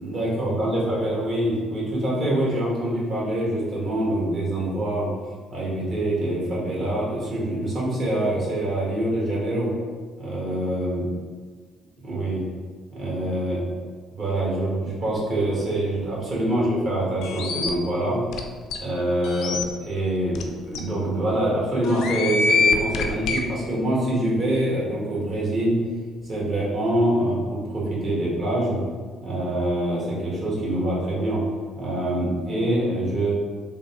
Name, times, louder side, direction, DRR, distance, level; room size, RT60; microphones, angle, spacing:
voice 1, 0.0-5.1 5.5-9.7 10.2-11.0 12.0-12.4 12.9-13.6 14.1-18.2 18.8-25.8 26.2-28.8 29.2-31.4 31.7-33.3, right 1 dB, 55° right, -5 dB, 1.3 m, -25 dB
sound 1, 17.2-17.7 18.3-18.4 18.7-18.8 19.2-19.6 20.3-20.4 20.7-20.8 21.8-23.4, left 4 dB, 70° left, 0.3 m, -23 dB
3.4 x 2.3 x 2.9 m, 1.5 s
hypercardioid pair, 55°, 0 cm